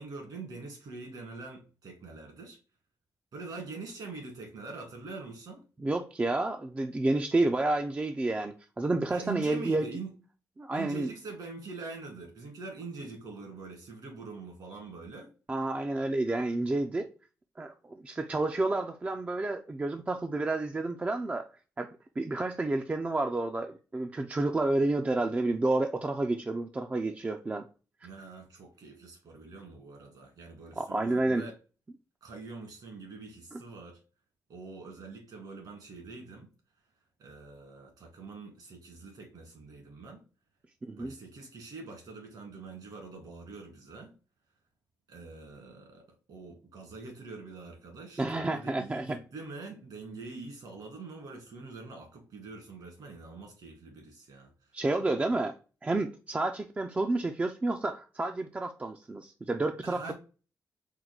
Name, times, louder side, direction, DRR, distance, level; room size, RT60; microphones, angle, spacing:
voice 1, 0.0-2.6 3.3-5.6 9.1-10.1 10.7-15.3 28.0-31.6 32.2-34.0 34.5-36.5 37.2-40.2 41.0-44.1 45.1-54.5 59.8-60.1, right 3 dB, 70° right, 2.0 m, -44 dB
voice 2, 5.8-9.9 10.6-11.1 15.5-17.1 17.6-21.5 21.8-21.9 22.2-27.7 30.8-31.5 33.5-33.6 40.8-41.2 48.2-49.2 54.7-55.6 55.8-60.1, right 2 dB, 20° right, 0.4 m, -30 dB
4.4 x 2.2 x 3.8 m
cardioid pair, 100°, 7 cm